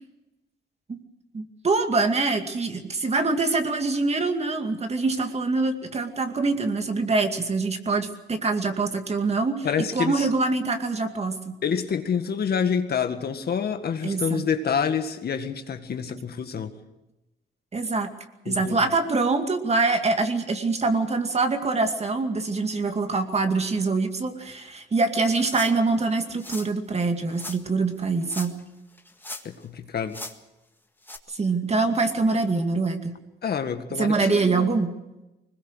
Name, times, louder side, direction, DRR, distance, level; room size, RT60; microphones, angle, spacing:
voice 1, 1.3-9.7 9.9-11.5 14.0-14.4 17.7-18.1 18.4-28.6 31.3-33.2 34.0-34.9, right 3 dB, 30° right, 6 dB, 2.3 m, -24 dB
voice 2, 9.6-10.3 11.6-16.8 18.5-18.8 29.4-30.2 33.4-34.7, left 7 dB, 55° left, 8 dB, 1.8 m, -27 dB
sound 1, 25.5-25.9 26.4-26.7 27.3-27.6 28.2-28.7 29.0-29.6 30.1-30.3 31.0-31.2, left 2 dB, 10° left, 1.8 m, -38 dB
21.5 x 20.0 x 6.5 m, 0.98 s
cardioid pair, 90°, 20 cm